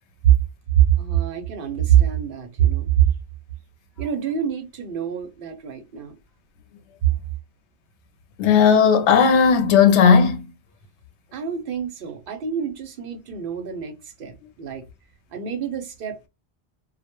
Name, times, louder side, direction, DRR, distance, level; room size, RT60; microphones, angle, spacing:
voice 1, 0.7-2.9 4.0-6.1 11.3-14.8 15.3-16.3, right 10 dB, 60° right, 0.6 m, -24 dB
voice 2, 8.4-10.4, left 6 dB, 85° left, 0.9 m, -15 dB
2.1 x 2.1 x 2.9 m
omnidirectional pair, 1.1 m